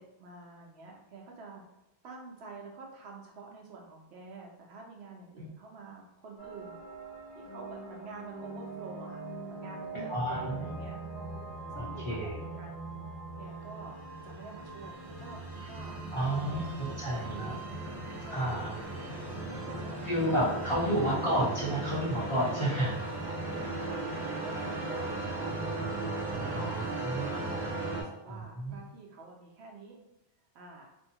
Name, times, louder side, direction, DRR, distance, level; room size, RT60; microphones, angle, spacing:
voice 1, 0.0-1.6 2.0-6.8 7.3-11.0 11.7-12.9 13.4-14.0 14.2-17.7 18.2-20.7 24.4-30.0 30.5-30.9, right 3 dB, 85° right, 0 dB, 0.9 m, -48 dB
sound 1, 6.4-24.2, right 2 dB, 85° left, 1.0 m, -44 dB
voice 2, 9.9-10.7 11.8-12.4 16.1-17.5 18.3-18.7 20.0-23.0 23.8-23.9 26.5-27.7 28.3-28.8, right 1 dB, 35° left, -9 dB, 0.7 m, -31 dB
sound 2, 13.9-28.0, right 2 dB, 40° right, 0.9 m, -37 dB
2.7 x 2.2 x 2.7 m, 0.93 s
omnidirectional pair, 1.1 m